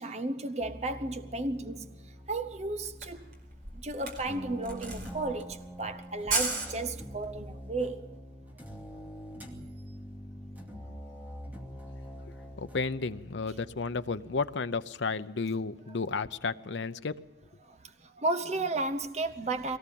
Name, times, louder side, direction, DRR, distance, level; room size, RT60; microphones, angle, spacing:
voice 1, 0.0-3.3 3.7-8.2 8.9-9.0 17.6-19.8, right 2 dB, 35° right, 0.8 m, -34 dB
sound 1, 0.6-14.6, equal, 10° right, 2.4 m, -45 dB
Camera, 2.5-2.6 2.8-7.4, right 3 dB, 50° right, 4.7 m, -35 dB
voice 2, 12.6-17.2, left 4 dB, 80° left, 0.7 m, -32 dB
22.5 x 18.0 x 7.7 m
head